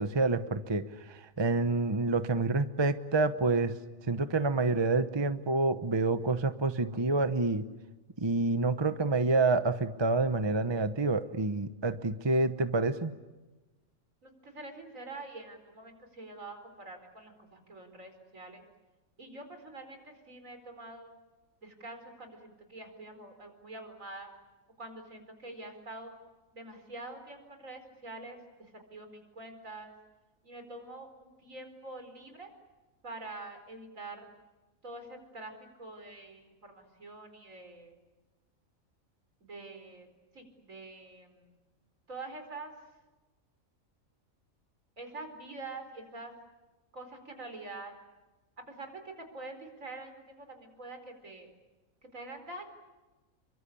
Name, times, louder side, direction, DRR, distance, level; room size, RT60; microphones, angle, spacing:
voice 1, 0.0-3.7 4.1-7.6 8.2-13.1, right 3 dB, 20° right, 10 dB, 0.9 m, -28 dB
voice 2, 14.2-18.6 19.2-21.2 21.6-24.3 24.8-26.1 26.5-29.9 30.4-32.5 33.0-34.3 34.8-35.5 35.8-38.0 39.4-40.1 40.3-41.5 42.1-42.7 45.0-46.3 46.9-47.9 48.7-51.5 52.1-52.7, right 2 dB, 70° right, 6 dB, 4.9 m, -46 dB
29.0 x 24.0 x 8.5 m, 1.1 s
omnidirectional pair, 1.4 m